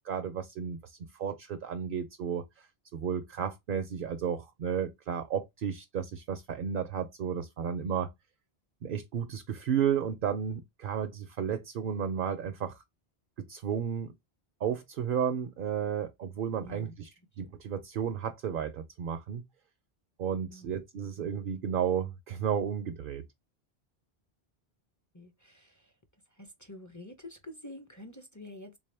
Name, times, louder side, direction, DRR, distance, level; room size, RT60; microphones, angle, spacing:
voice 1, 0.0-2.7 2.9-8.1 8.8-12.8 13.4-14.1 14.6-17.1 17.4-19.4 20.2-23.2, right 8 dB, 60° right, 0.7 m, -33 dB
voice 2, 16.6-16.9 20.5-20.7 25.1-25.9 26.3-28.8, left 1 dB, 20° left, 0.6 m, -48 dB
3.6 x 2.7 x 3.2 m
omnidirectional pair, 1.1 m